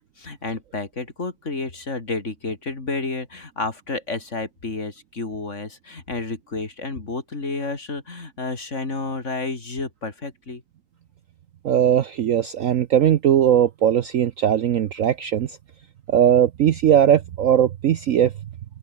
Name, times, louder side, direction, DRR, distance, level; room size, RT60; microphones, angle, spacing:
voice 1, 0.2-10.6, left 3 dB, 40° left, 3.4 m, -30 dB
voice 2, 11.6-15.6 16.1-18.3, right 10 dB, 60° right, 1.0 m, -19 dB
open air
omnidirectional pair, 1.9 m